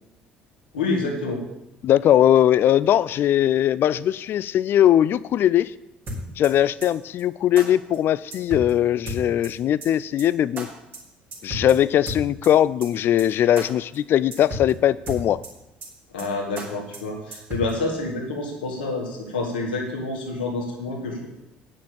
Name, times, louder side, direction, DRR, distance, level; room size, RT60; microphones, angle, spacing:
voice 1, 0.7-1.4 16.1-21.3, left 3 dB, 75° left, 1 dB, 2.0 m, -28 dB
voice 2, 1.8-5.7 6.4-10.7 11.4-15.4, left 11 dB, 45° left, 19 dB, 0.4 m, -20 dB
sound 1, 6.1-6.5 6.8-6.9 7.2-7.3 7.6-7.7 7.9-8.0 8.3-8.7 9.1-9.5 9.8-9.9 10.2-10.3 10.6-10.7 10.9-11.0 11.3-11.7 12.1-12.5 12.8-12.9 13.2-13.3 13.6-13.7 13.9-14.0 14.3-14.7 15.1-15.5 15.8-15.9 16.2-16.3 16.6-16.7 16.9-17.0 17.3-17.7, equal, 40° right, 4.0 m, -33 dB
9.4 x 6.6 x 7.1 m, 0.89 s
figure-of-eight pair, 55°, 5 cm